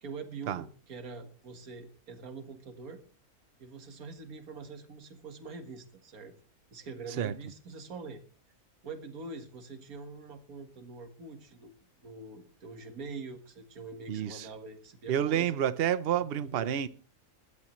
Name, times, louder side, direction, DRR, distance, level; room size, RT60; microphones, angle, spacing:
voice 1, 0.0-3.0 3.6-6.4 6.7-8.2 8.8-11.7 12.0-15.6 16.4-16.9, right 4 dB, 75° right, 2.1 m, -44 dB
voice 2, 14.1-14.5 15.1-16.9, right 10 dB, 50° right, 0.8 m, -29 dB
20.5 x 13.0 x 3.1 m
omnidirectional pair, 1.6 m